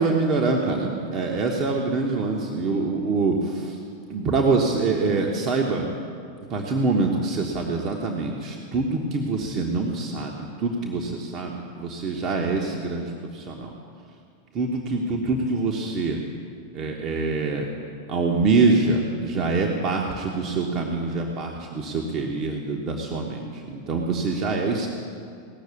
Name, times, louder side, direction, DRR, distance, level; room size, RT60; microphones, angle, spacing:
voice 1, 0.0-3.8 4.1-5.9 6.5-13.7 14.5-16.2 16.7-17.7 18.1-24.9, right 3 dB, 35° right, 0 dB, 1.2 m, -25 dB
17.5 x 6.5 x 8.4 m, 2.3 s
figure-of-eight pair, 90°, 0 cm